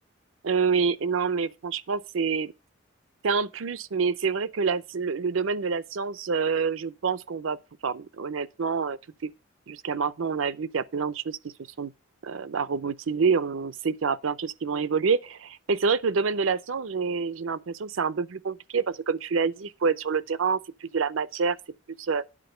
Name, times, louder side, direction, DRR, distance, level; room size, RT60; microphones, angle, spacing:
voice 1, 0.4-2.5 3.2-7.6 7.8-9.3 9.7-11.4 11.8-11.9 12.2-21.6 22.0-22.2, right 5 dB, 90° right, 0.6 m, -27 dB
9.8 x 4.3 x 6.7 m
head